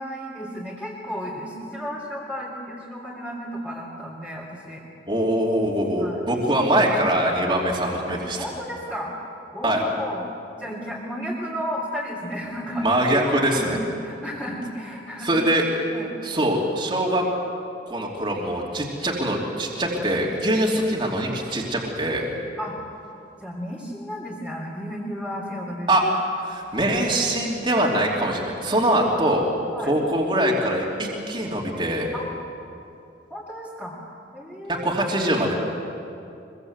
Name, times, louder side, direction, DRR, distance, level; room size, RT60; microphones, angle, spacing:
voice 1, 0.0-4.8 6.0-6.9 8.1-9.1 9.5-10.2 10.5-15.3 15.9-16.2 22.6-22.7 23.4-26.0 29.7-29.9 32.1-32.3 33.3-34.0 34.3-34.9, equal, 5° left, -6 dB, 3.3 m, -33 dB
voice 2, 5.1-8.4 9.6-9.8 12.8-13.8 15.2-15.6 16.2-17.2 17.9-22.3 25.9-26.0 26.4-29.5 29.9-32.1 34.7-35.5, right 1 dB, 25° right, -2 dB, 3.0 m, -23 dB
24.0 x 23.0 x 8.1 m, 2.6 s
head